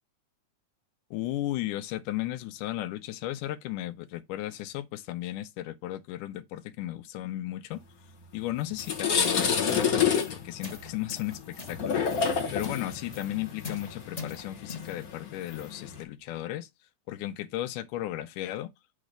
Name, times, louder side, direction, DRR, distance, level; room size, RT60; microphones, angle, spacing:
voice 1, 1.1-7.8 8.3-12.0 12.5-16.7 17.1-18.7, left 14 dB, 85° left, 2.2 m, -35 dB
sound 1, 8.2-8.3 8.7-16.0, left 6 dB, 50° left, 1.1 m, -29 dB
sound 2, 8.6-15.8, left 5 dB, 25° left, 0.8 m, -44 dB
8.9 x 3.2 x 5.0 m
omnidirectional pair, 3.7 m